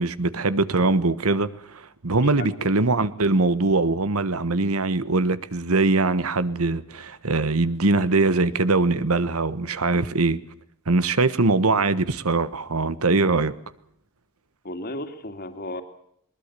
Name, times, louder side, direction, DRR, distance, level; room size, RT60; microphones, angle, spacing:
voice 1, 0.0-10.4 10.9-13.5, right 3 dB, 80° right, 1.3 m, -22 dB
voice 2, 2.2-2.7 14.6-15.8, left 1 dB, 45° left, 2.7 m, -34 dB
21.5 x 20.5 x 6.8 m
head